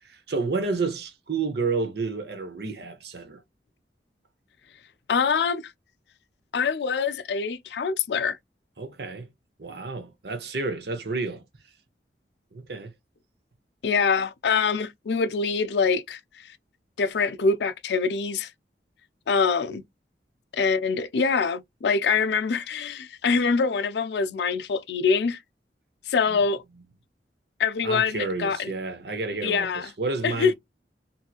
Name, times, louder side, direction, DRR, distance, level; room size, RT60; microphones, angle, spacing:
voice 1, 0.0-3.4 8.8-9.3 9.6-11.4 12.5-12.9 26.3-26.4 27.8-30.5, right 3 dB, 70° right, 0.8 m, -30 dB
voice 2, 5.1-5.6 6.5-8.4 13.8-16.2 17.0-18.5 19.3-19.8 20.5-25.4 26.1-26.6 27.6-28.7 29.4-29.9 30.2-30.5, left 5 dB, 75° left, 0.4 m, -24 dB
2.8 x 2.7 x 2.3 m
head